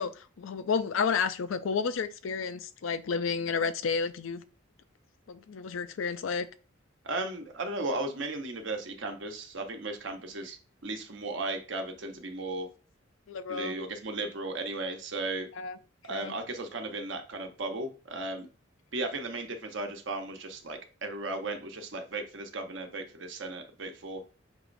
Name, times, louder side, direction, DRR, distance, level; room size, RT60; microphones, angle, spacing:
voice 1, 0.0-4.4 5.3-6.5 13.3-13.7 15.6-15.8 16.1-16.3, left 5 dB, 75° left, 0.4 m, -31 dB
voice 2, 7.0-10.6 10.8-12.7 13.5-15.5 16.0-18.5 18.9-24.3, right 2 dB, 65° right, 0.8 m, -35 dB
6.1 x 3.0 x 2.6 m
head